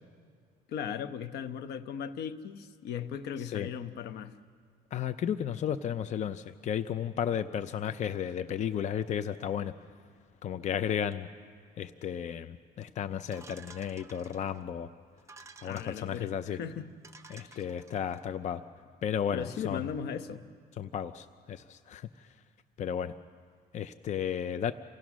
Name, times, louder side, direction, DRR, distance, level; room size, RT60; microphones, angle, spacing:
voice 1, 0.7-4.4 15.6-16.9 17.4-17.6 19.3-20.5, left 8 dB, 75° left, 11 dB, 1.0 m, -37 dB
voice 2, 3.4-3.7 4.9-9.7 10.4-11.3 11.8-14.9 15.6-16.6 17.3-18.6 19.0-19.8 20.8-22.1 22.8-23.1 23.7-24.7, left 9 dB, 45° left, 11 dB, 0.6 m, -33 dB
sound 1, 13.3-14.6 15.2-16.2 16.7-16.8 17.0-18.2, right 4 dB, 15° right, 1.1 m, -53 dB
27.5 x 16.0 x 6.2 m, 2.1 s
cardioid pair, 110°, 17 cm